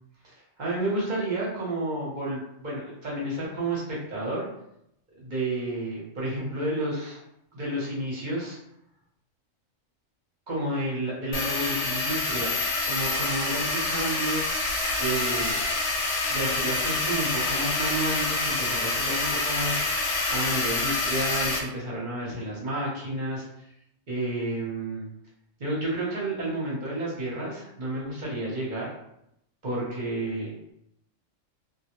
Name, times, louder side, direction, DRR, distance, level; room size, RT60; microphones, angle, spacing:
voice 1, 0.2-4.5 5.2-7.2 7.5-8.6 10.5-14.4 15.0-15.6 16.3-19.8 20.3-23.5 24.1-25.0 25.6-28.9 29.6-30.7, right 1 dB, 45° right, -5 dB, 0.7 m, -31 dB
sound 1, 11.3-21.6, left 2 dB, 80° left, 1.0 m, -27 dB
2.2 x 2.0 x 2.9 m, 0.78 s
omnidirectional pair, 1.4 m